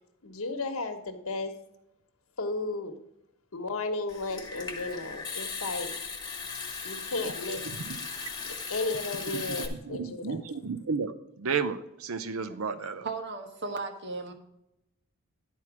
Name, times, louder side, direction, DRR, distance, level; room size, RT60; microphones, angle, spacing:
voice 1, 0.2-1.5 2.4-2.9 3.5-5.9 6.8-7.6 8.7-10.4, left 3 dB, 80° left, 6 dB, 1.2 m, -34 dB
Water tap faucet / Sink (filling or washing) / Trickle dribble, 4.1-9.7, left 5 dB, 20° left, 1.3 m, -38 dB
voice 2, 9.3-13.1, right 5 dB, 80° right, 12 dB, 0.6 m, -33 dB
voice 3, 13.0-14.3, right 3 dB, 55° right, 6 dB, 1.3 m, -36 dB
11.5 x 4.5 x 5.9 m, 0.85 s
head